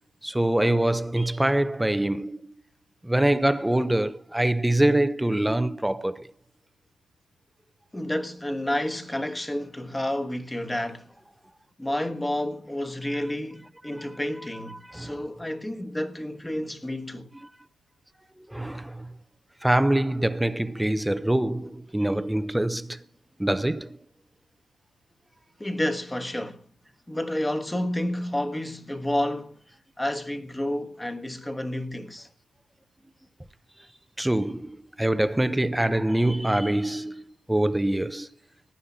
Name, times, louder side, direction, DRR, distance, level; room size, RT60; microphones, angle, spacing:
voice 1, 0.2-2.4 3.0-6.3 14.0-14.1 14.9-15.2 18.4-19.1 19.6-23.0 23.4-24.0 34.2-38.3, right 1 dB, 5° right, 0.7 m, -24 dB
voice 2, 7.9-11.1 11.8-17.3 25.6-26.6 27.1-29.6 30.0-32.3, left 1 dB, 10° left, 1.3 m, -30 dB
18.5 x 9.7 x 4.1 m
cardioid pair, 90°, 0 cm